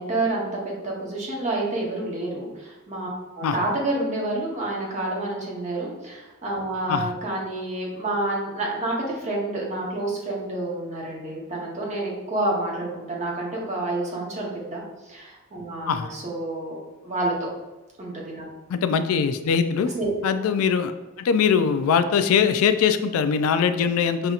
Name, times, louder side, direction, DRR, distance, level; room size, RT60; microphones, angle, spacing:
voice 1, 0.0-3.1 3.3-16.8 17.0-17.3 18.0-18.5 19.9-20.1, right 2 dB, 35° right, -3 dB, 0.9 m, -29 dB
voice 2, 18.7-19.9 20.2-20.9 21.2-24.3, left 6 dB, 85° left, 12 dB, 0.3 m, -21 dB
5.4 x 2.7 x 2.4 m, 1.1 s
head